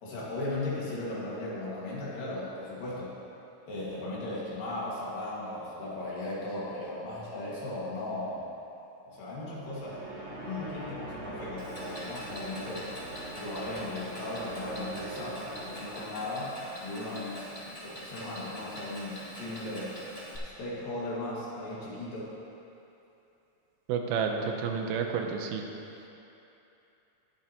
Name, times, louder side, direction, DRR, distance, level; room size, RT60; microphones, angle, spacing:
voice 1, 0.0-3.1 3.7-8.5 9.1-10.0 10.4-12.9 13.4-16.6 16.8-17.5 17.8-20.0 20.6-22.3, left 2 dB, 70° left, -7 dB, 3.6 m, -37 dB
sound 1, 9.5-16.4, right 1 dB, 60° right, 3.7 m, -43 dB
Clock, 11.6-20.4, equal, 25° left, 1.4 m, -44 dB
voice 2, 23.9-25.7, right 6 dB, 90° right, 3 dB, 2.7 m, -30 dB
19.0 x 7.4 x 3.0 m, 2.9 s
omnidirectional pair, 4.2 m